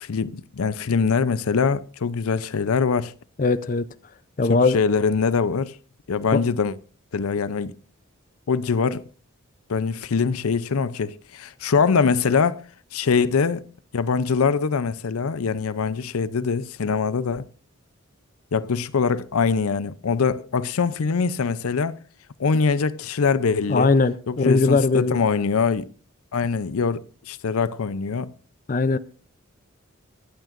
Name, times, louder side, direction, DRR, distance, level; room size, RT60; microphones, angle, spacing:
voice 1, 0.0-3.1 4.5-5.8 6.1-6.8 7.1-7.7 8.5-9.0 9.7-12.6 12.9-13.6 13.9-17.5 18.5-22.0 22.4-23.9 24.3-25.9 26.3-28.3, left 5 dB, 85° left, 0.5 m, -23 dB
voice 2, 3.4-3.9 4.4-4.8 23.7-25.2 28.7-29.0, left 3 dB, 40° left, 0.5 m, -19 dB
23.5 x 9.1 x 2.5 m
head